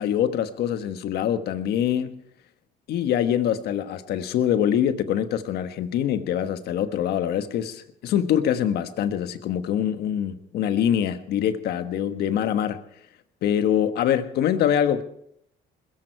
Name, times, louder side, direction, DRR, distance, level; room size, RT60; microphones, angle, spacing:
voice 1, 0.0-2.2 2.9-12.8 13.4-15.0, left 9 dB, 75° left, 1.4 m, -24 dB
21.5 x 14.5 x 4.5 m
cardioid pair, 110°, 17 cm